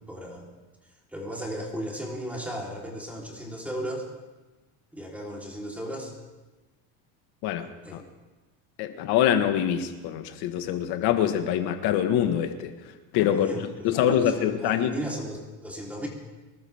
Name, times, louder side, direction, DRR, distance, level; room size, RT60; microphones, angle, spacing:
voice 1, 0.1-0.5 1.1-4.1 4.9-6.1 7.8-8.0 13.3-16.1, equal, 5° right, -2 dB, 3.8 m, -35 dB
voice 2, 8.8-12.7 13.1-14.9, left 10 dB, 65° left, 7 dB, 1.7 m, -25 dB
24.5 x 13.5 x 3.6 m, 1.2 s
cardioid pair, 135°, 40 cm